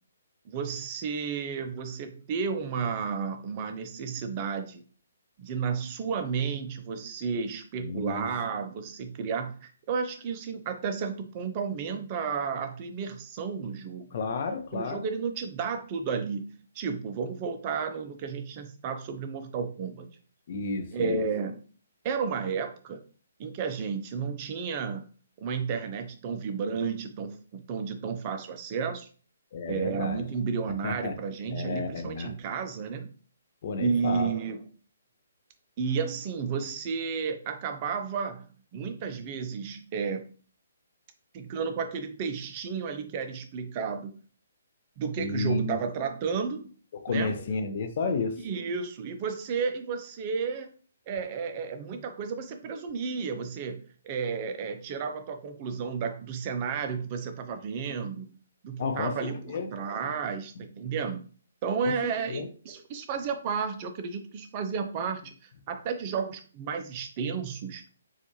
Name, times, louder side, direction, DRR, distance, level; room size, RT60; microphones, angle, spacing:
voice 1, 0.5-4.8 5.4-14.1 14.7-20.1 20.9-21.6 22.0-23.0 23.4-25.0 25.4-29.1 29.7-33.1 33.8-34.6 35.8-38.5 38.7-40.3 41.3-44.1 45.0-46.7 47.1-47.3 48.4-50.7 51.1-58.3 58.6-61.2 61.6-65.3 65.7-67.8, right 6 dB, 35° right, 7 dB, 0.4 m, -32 dB
voice 2, 7.8-8.3 14.1-15.1 20.5-21.2 29.5-30.2 30.8-31.2 31.4-32.3 33.6-34.3 45.2-45.8 46.9-48.4 58.8-59.7 61.8-61.9 62.3-62.5, left 4 dB, 45° left, 7 dB, 0.5 m, -31 dB
4.2 x 2.4 x 2.9 m, 0.39 s
figure-of-eight pair, 135°, 0 cm